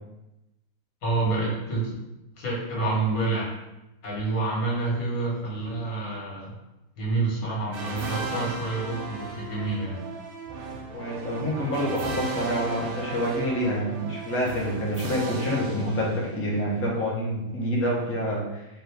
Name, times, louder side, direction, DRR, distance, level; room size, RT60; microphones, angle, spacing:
voice 1, 1.0-1.9 2.4-3.5 4.0-6.5 7.0-10.0, right 3 dB, 75° left, -4 dB, 1.6 m, -28 dB
sound 1, 7.7-16.6, right 4 dB, 85° right, 0.5 m, -36 dB
voice 2, 10.9-18.7, equal, 15° left, -4 dB, 0.5 m, -27 dB
4.1 x 2.6 x 3.3 m, 0.96 s
omnidirectional pair, 1.5 m